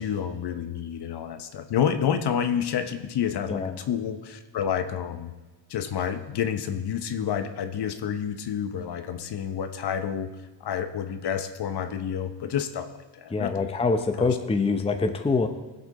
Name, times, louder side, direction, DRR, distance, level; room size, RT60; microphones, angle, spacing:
voice 1, 0.0-5.3 5.7-10.3 10.6-13.7 14.2-14.3, left 8 dB, 55° left, 9 dB, 1.1 m, -29 dB
voice 2, 13.3-15.5, left 4 dB, 10° left, 6 dB, 0.7 m, -25 dB
20.0 x 8.1 x 4.2 m, 1.2 s
cardioid pair, 125°, 48 cm